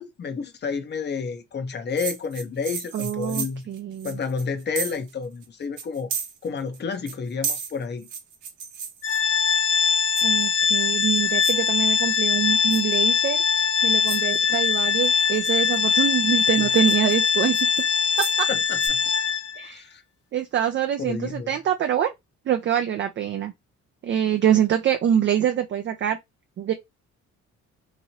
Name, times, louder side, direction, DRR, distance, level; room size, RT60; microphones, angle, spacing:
voice 1, 0.0-3.6 4.0-6.1 6.4-8.1 16.6-16.7 18.5-19.0 19.6-20.0 21.0-21.6, left 5 dB, 35° left, 0.6 m, -30 dB
sound 1, 2.0-5.1 5.4-5.5 5.8-6.8 7.1-9.6 10.2-10.6 11.0-11.6 12.0-12.4 12.7-13.0 13.6-13.7 14.1-14.4 15.0-15.9 16.4-18.4 18.8-18.9, right 6 dB, 80° right, 0.8 m, -34 dB
voice 2, 2.9-4.1 10.2-17.6 18.2-18.5 19.6-19.8 20.3-22.1 22.5-23.5 24.0-26.2 26.6-26.7, right 9 dB, 40° right, 0.4 m, -25 dB
Organ, 9.0-19.7, left 6 dB, 55° left, 0.9 m, -22 dB
3.0 x 2.5 x 2.8 m
cardioid pair, 90°, 30 cm